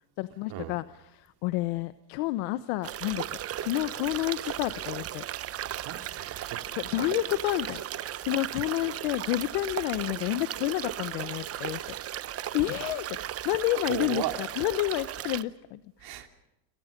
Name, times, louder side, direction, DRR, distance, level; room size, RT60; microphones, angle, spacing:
voice 1, 0.2-3.2 3.6-5.2 6.8-12.0 12.5-16.3, left 17 dB, 70° left, 13 dB, 1.2 m, -30 dB
sound 1, 2.8-15.4, right 12 dB, 30° right, 0.8 m, -36 dB
voice 2, 5.6-6.6 13.9-14.3 16.0-16.3, right 13 dB, 50° right, 6 dB, 3.0 m, -36 dB
29.5 x 27.5 x 5.3 m, 0.92 s
cardioid pair, 140°, 48 cm